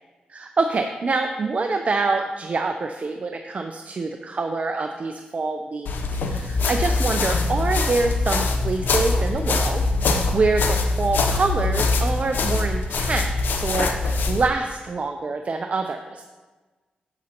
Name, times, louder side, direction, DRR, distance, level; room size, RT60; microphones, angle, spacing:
voice 1, 0.3-16.2, right 3 dB, 45° right, 5 dB, 0.5 m, -26 dB
sound 1, 5.9-14.5, left 3 dB, 80° left, 0.7 m, -23 dB
9.0 x 7.5 x 2.9 m, 1.3 s
cardioid pair, 65°, 3 cm